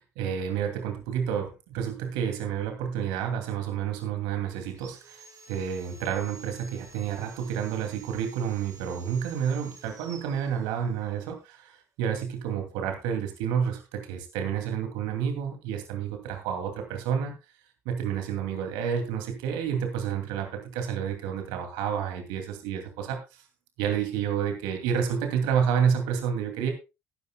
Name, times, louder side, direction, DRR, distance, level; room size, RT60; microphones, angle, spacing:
voice 1, 0.0-17.3 17.8-23.4 23.8-26.7, right 8 dB, 70° right, 4 dB, 2.6 m, -30 dB
Sawing, 4.7-11.2, right 4 dB, 50° right, 3.0 m, -51 dB
19.5 x 9.6 x 2.3 m, 0.27 s
hypercardioid pair, 55°, 8 cm